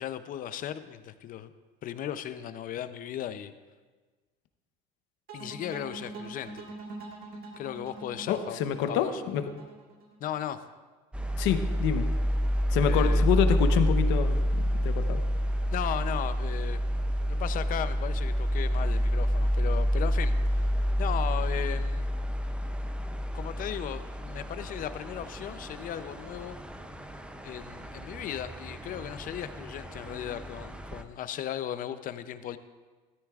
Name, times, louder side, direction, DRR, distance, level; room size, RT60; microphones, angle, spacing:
voice 1, 0.0-1.5 1.8-3.5 5.3-6.6 7.6-8.6 8.9-9.3 10.2-10.6 12.8-13.3 15.7-16.8 17.3-20.7 21.0-22.1 23.3-26.6 27.4-32.6, left 10 dB, 45° left, 12 dB, 0.6 m, -36 dB
sound 1, 5.3-10.4, right 3 dB, 50° right, 1.8 m, -44 dB
voice 2, 8.3-9.4 11.4-12.1 12.7-14.5 14.8-15.2, left 8 dB, 70° left, 8 dB, 0.9 m, -27 dB
sound 2, 11.1-31.0, equal, 5° right, 0.5 m, -29 dB
13.5 x 13.0 x 2.4 m, 1.4 s
cardioid pair, 130°, 20 cm